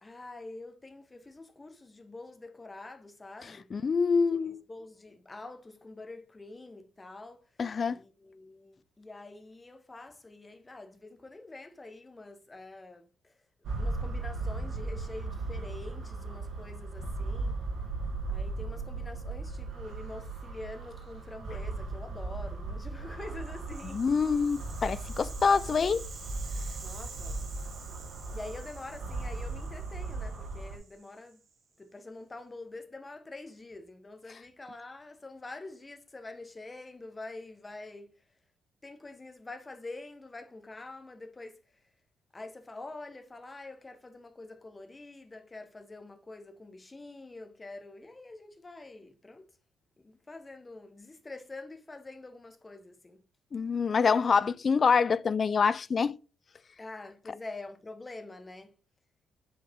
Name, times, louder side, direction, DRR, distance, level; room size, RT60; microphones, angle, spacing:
voice 1, 0.0-3.7 4.3-7.5 7.9-17.6 18.3-24.1 26.8-27.5 28.3-31.4 31.8-38.1 38.8-41.8 42.3-49.5 50.0-53.2 56.8-58.8, left 2 dB, 20° left, 1.4 m, -46 dB
voice 2, 3.7-4.6 7.6-8.0 23.8-26.1 53.5-56.2, left 5 dB, 40° left, 0.4 m, -26 dB
sound 1, 13.6-30.8, right 3 dB, 75° right, 2.1 m, -37 dB
Rattle (instrument), 23.3-31.5, right 5 dB, 55° right, 1.9 m, -49 dB
8.2 x 5.0 x 3.7 m
cardioid pair, 90°, 0 cm